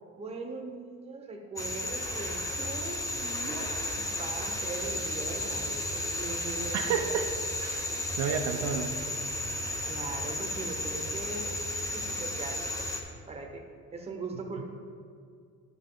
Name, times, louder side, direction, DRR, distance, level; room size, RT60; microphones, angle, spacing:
voice 1, 0.2-6.8 9.9-11.5 11.9-12.7 13.3-13.6 13.9-14.6, right 3 dB, 20° right, 2 dB, 0.9 m, -40 dB
sound 1, 1.6-13.0, left 1 dB, 10° left, 0.6 m, -33 dB
voice 2, 6.7-7.9 8.2-9.0 14.6-14.7, right 7 dB, 65° right, 4 dB, 0.6 m, -31 dB
11.0 x 6.3 x 3.8 m, 2.2 s
cardioid pair, 175°, 31 cm